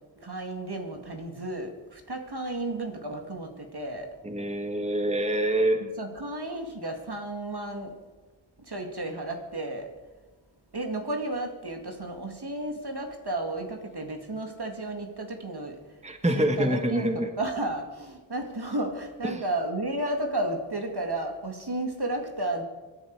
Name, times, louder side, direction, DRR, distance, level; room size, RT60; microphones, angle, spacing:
voice 1, 0.2-4.1 6.0-7.9 8.7-9.9 10.7-15.8 16.4-22.6, right 1 dB, 55° right, 3 dB, 2.2 m, -33 dB
voice 2, 4.2-5.8 16.0-17.3 19.2-19.4, right 1 dB, 15° right, 6 dB, 1.5 m, -26 dB
26.5 x 10.5 x 4.7 m, 1.3 s
wide cardioid pair, 40°, 45 cm